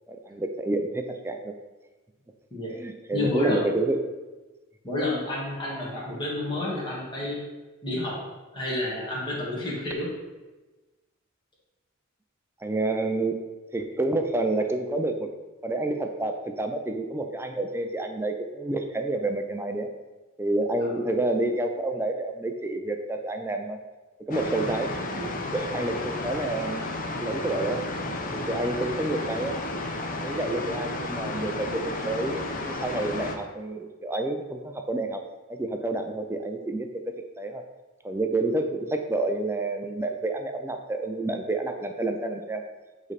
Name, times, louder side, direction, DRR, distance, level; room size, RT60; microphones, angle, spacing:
voice 1, 0.1-1.5 2.8-4.0 12.6-13.4 13.7-15.3 15.6-19.9 20.4-23.8 24.3-26.8 27.2-27.8 28.3-29.6 30.2-35.2 35.5-36.9 37.4-37.6 38.0-42.6, right 2 dB, 10° right, 5 dB, 0.4 m, -29 dB
voice 2, 3.1-3.7 4.8-7.4 7.8-8.1 8.5-10.1 20.8-21.0, left 1 dB, 25° left, -6 dB, 1.6 m, -29 dB
sound 1, 24.3-33.4, left 2 dB, 40° left, 0.6 m, -32 dB
7.4 x 3.3 x 4.1 m, 1.2 s
head